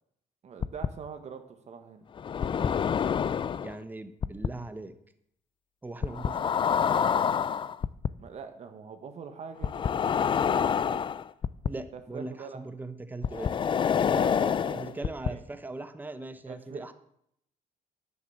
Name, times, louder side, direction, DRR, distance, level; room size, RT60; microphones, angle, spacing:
voice 1, 0.4-2.0 8.2-11.0 11.9-12.8 14.1-15.4 16.5-16.9, right 6 dB, 45° right, 7 dB, 1.4 m, -44 dB
sound 1, 0.6-0.9 2.2-3.7 4.2-4.5 6.0-8.1 9.6-11.7 13.2-15.3, left 7 dB, 35° left, 0.4 m, -27 dB
voice 2, 3.6-5.0 5.8-6.5 11.6-13.5 14.7-16.9, right 2 dB, 10° right, 10 dB, 1.0 m, -40 dB
10.0 x 8.2 x 7.1 m, 0.72 s
cardioid pair, 125°, 15 cm